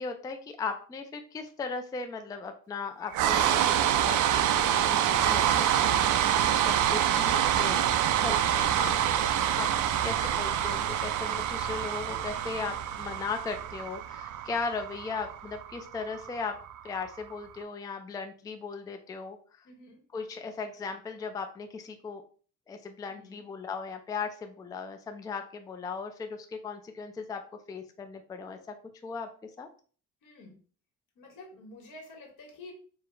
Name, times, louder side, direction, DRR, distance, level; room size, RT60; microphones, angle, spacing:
voice 1, 0.0-9.7 10.0-16.6 16.8-19.4 20.1-22.2 22.7-27.4 27.7-28.8 29.0-29.7, left 4 dB, 15° left, 6 dB, 0.3 m, -37 dB
sound 1, 3.1-17.2, right 10 dB, 70° right, 0.5 m, -26 dB
voice 2, 7.3-7.7 9.7-10.1 19.6-20.0 23.1-23.4 30.2-30.6 31.1-32.7, left 2 dB, 80° left, 2 dB, 1.5 m, -49 dB
4.7 x 2.1 x 4.5 m, 0.41 s
cardioid pair, 160°, 31 cm